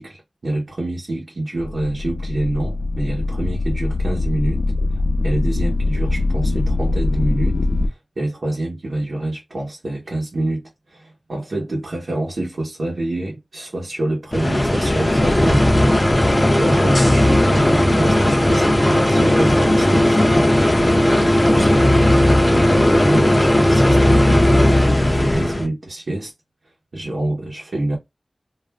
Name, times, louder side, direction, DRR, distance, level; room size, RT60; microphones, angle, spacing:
voice 1, 0.0-4.6 5.2-7.6 7.9-10.6 10.9-15.6 16.6-20.6 21.1-26.3 26.9-28.0, right 1 dB, 85° right, 0.9 m, -26 dB
sound 1, 1.6-7.9, left 2 dB, 85° left, 0.6 m, -22 dB
sound 2, 14.3-25.7, left 1 dB, 25° left, 0.6 m, -15 dB
2.4 x 2.3 x 3.2 m
wide cardioid pair, 65°, 0 cm